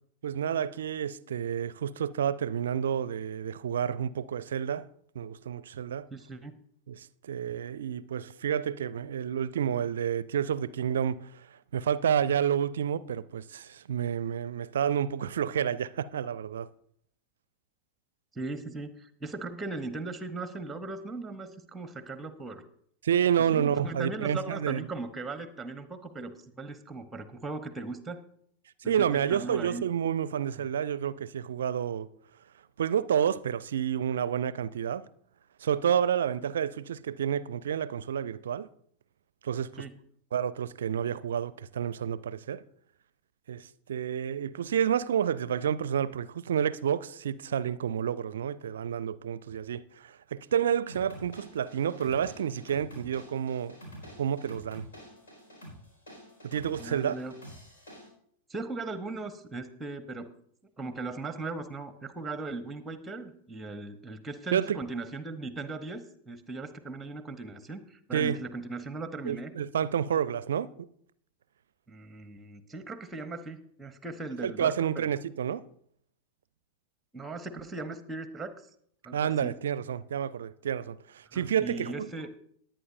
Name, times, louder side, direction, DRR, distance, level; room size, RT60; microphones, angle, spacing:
voice 1, 0.2-4.9 5.1-6.1 6.9-16.7 23.0-24.9 28.9-32.1 32.8-35.1 35.6-38.7 39.4-39.9 40.3-42.6 43.5-53.8 54.2-54.9 56.4-57.2 64.5-64.8 68.1-68.4 69.3-70.9 74.4-75.6 79.1-82.1, right 8 dB, 65° right, 0.4 m, -29 dB
voice 2, 6.1-6.6 18.3-22.6 23.5-28.2 28.8-29.8 39.8-39.9 56.8-57.3 58.5-60.3 60.8-69.5 71.9-75.1 77.1-78.5 79.0-79.6 81.3-82.3, right 3 dB, 10° right, 0.9 m, -38 dB
sound 1, 50.9-58.1, equal, 70° left, 4.5 m, -48 dB
19.0 x 8.9 x 2.6 m
figure-of-eight pair, 90°, 0 cm